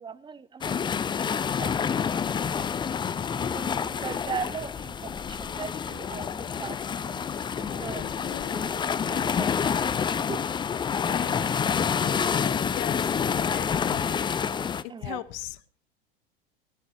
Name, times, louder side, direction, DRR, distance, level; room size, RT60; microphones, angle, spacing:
voice 1, 0.0-1.7 3.4-7.3 7.6-10.4 14.9-15.2, right 6 dB, 15° right, 1.0 m, -39 dB
sound 1, 0.6-14.8, left 7 dB, 15° left, 0.6 m, -28 dB
sound 2, 4.3-13.6, left 5 dB, 80° left, 2.4 m, -48 dB
voice 2, 8.0-8.5 10.9-11.5 12.0-14.0 14.8-15.6, left 18 dB, 50° left, 1.1 m, -39 dB
19.5 x 13.5 x 2.9 m
figure-of-eight pair, 85°, 29 cm